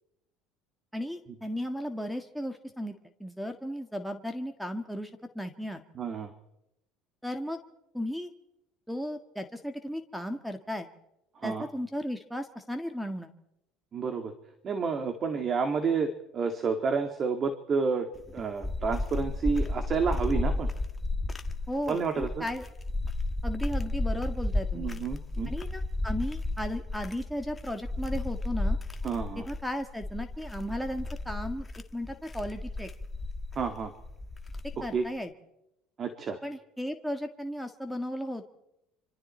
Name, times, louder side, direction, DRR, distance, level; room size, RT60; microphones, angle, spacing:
voice 1, 0.9-2.9 3.2-5.8 7.2-7.6 7.9-8.3 8.9-10.9 11.4-13.3 21.7-22.6 23.4-24.9 25.5-28.8 29.3-31.7 31.9-32.9 34.8-35.3 36.4-38.4, equal, ahead, 8 dB, 1.6 m, -35 dB
voice 2, 6.0-6.3 11.4-11.7 13.9-14.3 14.6-20.7 21.9-22.5 24.7-25.5 29.0-29.5 33.6-33.9 34.8-35.0 36.0-36.4, right 5 dB, 35° right, 7 dB, 2.2 m, -30 dB
sound 1, 18.2-35.0, left 2 dB, 20° left, 1.7 m, -33 dB
26.0 x 25.5 x 4.4 m, 0.86 s
supercardioid pair, 110°, 0 cm